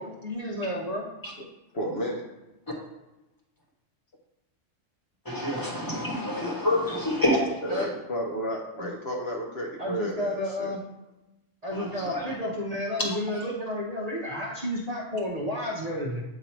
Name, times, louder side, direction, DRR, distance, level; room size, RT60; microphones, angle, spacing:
voice 1, 0.0-1.1 7.7-7.9 8.8-8.9 9.8-10.8 11.6-16.2, left 1 dB, 35° right, -3 dB, 0.8 m, -31 dB
voice 2, 1.7-2.2 7.6-10.7, equal, 55° left, 0 dB, 1.0 m, -32 dB
voice 3, 5.2-7.8 11.7-12.3, left 1 dB, 15° left, -3 dB, 1.3 m, -28 dB
7.9 x 2.7 x 4.4 m, 1.0 s
omnidirectional pair, 1.3 m